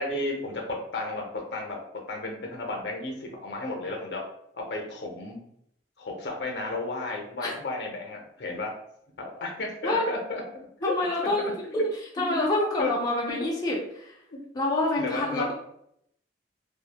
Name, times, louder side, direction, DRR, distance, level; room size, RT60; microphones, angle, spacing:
voice 1, 0.0-4.2 4.5-5.4 6.0-8.8 9.2-10.4 10.8-11.0 11.4-11.8 12.6-12.9 14.3-14.4 15.0-15.5, left 2 dB, 65° left, 1 dB, 0.6 m, -33 dB
voice 2, 10.8-11.4 12.2-14.0 14.5-15.5, left 2 dB, 20° left, -3 dB, 0.4 m, -27 dB
3.0 x 2.1 x 2.2 m, 0.73 s
head